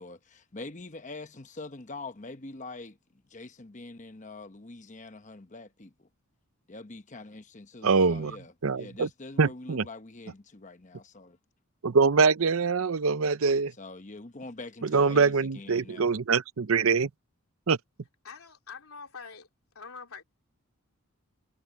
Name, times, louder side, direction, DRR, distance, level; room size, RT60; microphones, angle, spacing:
voice 1, 0.0-3.0 3.3-6.1 6.7-11.4 13.8-16.1, left 2 dB, 35° left, 1.0 m, -44 dB
voice 2, 7.8-8.4 8.6-9.1 9.4-9.8 11.8-13.7 14.8-17.1 17.7-17.8, right 4 dB, 65° right, 0.6 m, -24 dB
voice 3, 18.2-19.5 19.7-20.2, left 5 dB, 75° left, 3.1 m, -44 dB
head